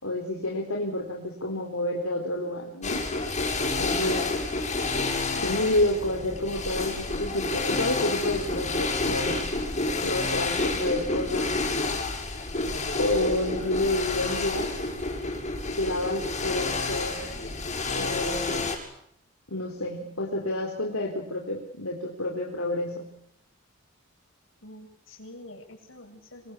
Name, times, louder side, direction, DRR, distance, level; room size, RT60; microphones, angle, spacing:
voice 1, 0.0-3.1 3.8-4.4 5.4-9.5 9.9-11.6 13.0-14.7 15.7-17.3 17.9-18.7 19.5-23.2, left 1 dB, 85° left, 0 dB, 4.1 m, -29 dB
sound 1, 2.8-18.8, left 3 dB, 35° left, 7.4 m, -29 dB
voice 2, 24.6-26.5, left 1 dB, 65° left, 4 dB, 7.6 m, -46 dB
26.5 x 23.5 x 8.4 m, 0.72 s
head